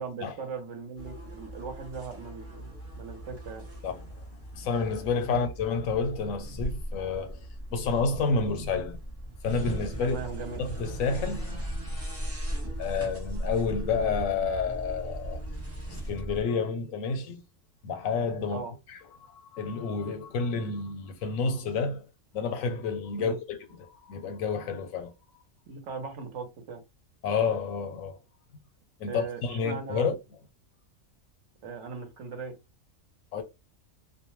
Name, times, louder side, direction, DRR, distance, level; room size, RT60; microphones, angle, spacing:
voice 1, 0.0-3.7 5.3-5.4 10.0-10.6 18.5-18.7 23.2-23.4 25.7-26.8 29.1-30.1 31.6-32.6, right 5 dB, 65° right, 1.0 m, -39 dB
sound 1, 0.9-16.4, right 1 dB, 15° right, 0.5 m, -38 dB
voice 2, 3.8-4.2 4.5-7.4 7.7-9.0 9.4-10.2 10.6-12.2 12.8-15.4 16.1-17.4 17.8-18.6 18.9-19.0 19.3-22.1 22.3-25.1 27.2-28.2 29.0-30.1 33.3-33.4, left 5 dB, 80° left, 1.0 m, -30 dB
2.4 x 2.1 x 3.0 m
omnidirectional pair, 1.4 m